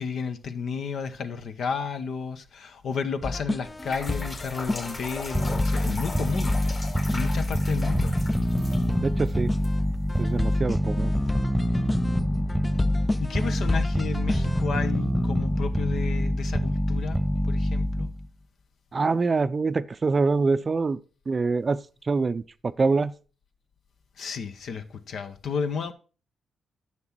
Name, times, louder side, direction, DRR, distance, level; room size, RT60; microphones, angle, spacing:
voice 1, 0.0-6.6 7.1-8.1 13.2-18.1 24.2-25.9, left 6 dB, 65° left, 0.9 m, -32 dB
sound 1, 3.2-14.7, left 2 dB, 25° left, 0.5 m, -34 dB
sound 2, 3.6-10.6, left 2 dB, 40° left, 2.6 m, -39 dB
sound 3, 5.3-18.3, equal, 5° left, 1.2 m, -26 dB
voice 2, 9.0-9.5 10.2-11.1 18.9-21.0 21.3-23.1, right 4 dB, 40° right, 0.5 m, -25 dB
9.6 x 6.0 x 4.4 m
hypercardioid pair, 45°, 0 cm